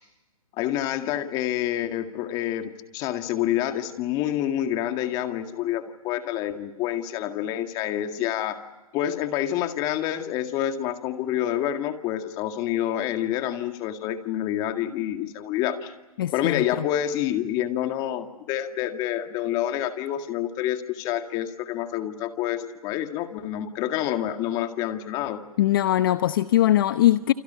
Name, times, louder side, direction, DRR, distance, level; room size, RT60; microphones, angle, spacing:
voice 1, 0.6-8.6 8.9-15.9 16.3-25.4, left 11 dB, 20° left, 7 dB, 2.0 m, -28 dB
voice 2, 16.2-16.8 25.6-27.3, left 13 dB, 40° left, 12 dB, 0.8 m, -21 dB
29.5 x 28.5 x 5.7 m, 1.1 s
hypercardioid pair, 150°, 19 cm